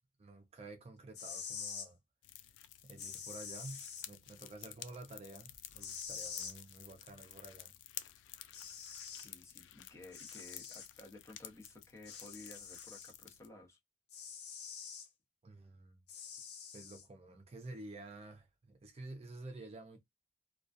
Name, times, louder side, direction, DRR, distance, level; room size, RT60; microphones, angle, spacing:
voice 1, 0.2-2.0 2.8-7.7 15.4-16.0 16.7-20.0, right 2 dB, 35° right, 0.4 m, -50 dB
sound 1, 1.0-1.9 3.0-4.1 5.8-6.6 8.0-8.1 8.5-9.3 10.1-10.9 12.0-13.1 14.1-15.1 16.1-17.1, left 7 dB, 65° left, 0.8 m, -46 dB
sound 2, 2.2-13.5, left 12 dB, 85° left, 0.3 m, -53 dB
voice 2, 9.2-13.8, left 2 dB, 15° left, 0.8 m, -55 dB
2.2 x 2.2 x 2.5 m
head